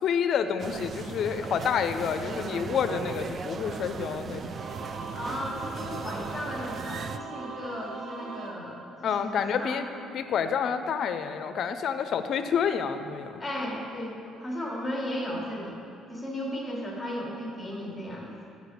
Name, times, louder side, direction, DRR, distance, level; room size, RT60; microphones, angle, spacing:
voice 1, 0.0-4.4 9.0-9.8 10.1-13.4, left 7 dB, 55° left, 9 dB, 0.5 m, -28 dB
sound 1, 0.6-7.2, right 5 dB, 40° right, 0.3 m, -37 dB
Singing / Musical instrument, 4.5-9.4, right 3 dB, 60° right, 0.7 m, -40 dB
voice 2, 5.1-8.8 9.2-9.8 13.4-15.8 16.1-18.3, left 1 dB, 10° left, -2 dB, 1.4 m, -35 dB
8.0 x 5.0 x 6.6 m, 2.6 s
cardioid pair, 120°, 0 cm